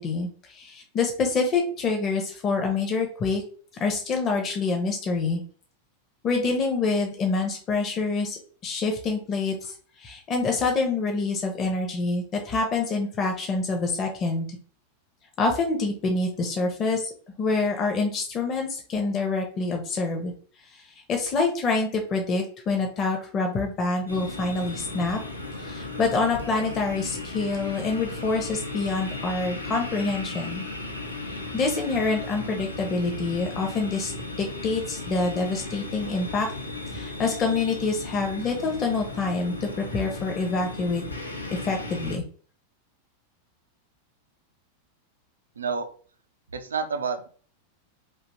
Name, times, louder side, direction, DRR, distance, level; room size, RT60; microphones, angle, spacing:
voice 1, 0.0-3.4 3.8-5.4 6.2-14.5 15.4-17.0 17.4-20.3 20.7-20.8 21.1-25.2 25.6-30.6 31.5-34.1 34.4-36.5 36.9-41.0 41.6-42.2, left 3 dB, 30° left, 2 dB, 0.7 m, -26 dB
sound 1, 24.1-42.2, left 2 dB, 80° left, 0.7 m, -36 dB
voice 2, 45.6-45.9 46.5-47.3, right 5 dB, 70° right, 8 dB, 0.4 m, -29 dB
2.7 x 2.3 x 4.0 m, 0.43 s
figure-of-eight pair, 90°, 0 cm